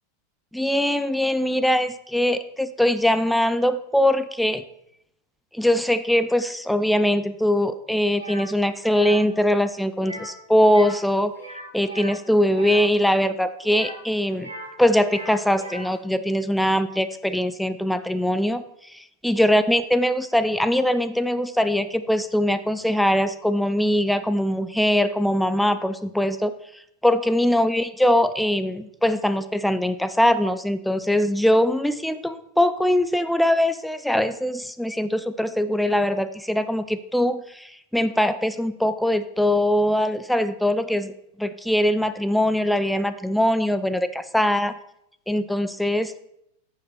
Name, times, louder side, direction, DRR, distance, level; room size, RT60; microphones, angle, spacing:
voice 1, 0.5-4.6 5.5-11.3 11.7-14.5 14.8-26.5 27.0-41.1 41.4-44.1 44.3-44.7 45.3-46.1, left 1 dB, ahead, 12 dB, 0.5 m, -22 dB
sound 1, 8.1-8.5 8.8-9.2 10.0-10.4 10.6-11.0 11.3-12.8 13.6-14.7 15.0-15.9, right 1 dB, 85° right, 1.7 m, -38 dB
8.7 x 7.1 x 4.3 m, 0.77 s
figure-of-eight pair, 90°, 0 cm